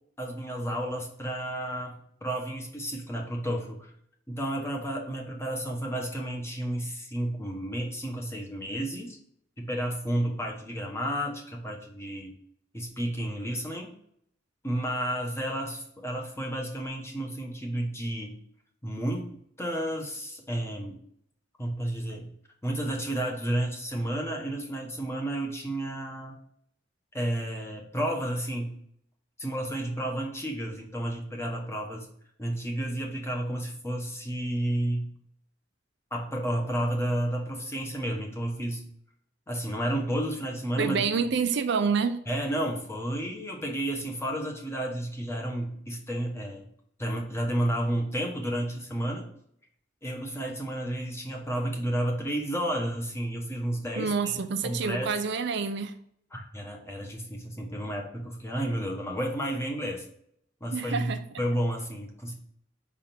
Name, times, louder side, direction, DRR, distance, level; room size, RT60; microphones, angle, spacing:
voice 1, 0.2-3.9 4.3-9.2 9.6-12.3 12.7-13.9 14.6-18.3 18.8-21.0 21.6-22.3 22.6-26.4 27.1-28.7 29.4-32.1 32.4-35.1 36.1-38.8 39.5-41.3 42.3-46.7 47.0-49.3 50.0-54.3 54.6-55.1 56.3-60.0 60.6-61.1 61.4-62.3, right 1 dB, 15° left, 1 dB, 1.2 m, -31 dB
voice 2, 40.8-42.2 54.0-55.9 60.7-61.2, right 5 dB, 65° right, 9 dB, 0.5 m, -27 dB
5.7 x 3.7 x 5.9 m, 0.69 s
head